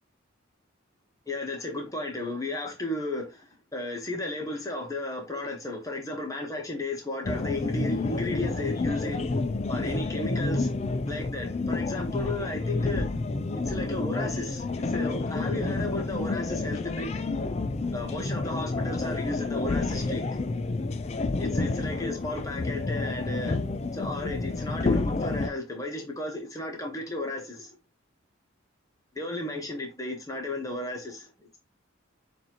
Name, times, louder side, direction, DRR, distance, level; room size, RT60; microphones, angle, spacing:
voice 1, 1.3-9.2 9.7-10.7 11.1-13.1 13.5-17.1 17.9-20.3 21.4-23.6 23.9-27.8 29.1-31.6, left 1 dB, 15° left, 1.1 m, -34 dB
sound 1, 7.2-25.5, left 3 dB, 30° left, 0.3 m, -29 dB
6.4 x 2.6 x 2.9 m
head